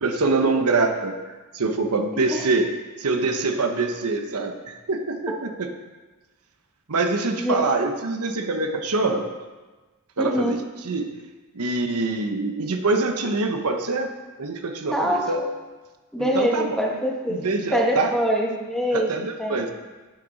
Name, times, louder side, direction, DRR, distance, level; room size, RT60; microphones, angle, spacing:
voice 1, 0.0-2.7 3.0-5.7 6.9-9.3 10.2-10.6 10.8-11.1 11.5-14.1 14.4-15.4 16.2-16.7 17.3-18.1 18.9-19.7, right 3 dB, 80° right, 5 dB, 1.0 m, -24 dB
voice 2, 10.2-10.6 14.9-15.5 16.1-17.4 17.7-19.6, equal, ahead, -2 dB, 1.5 m, -24 dB
10.0 x 8.8 x 4.1 m, 1.2 s
head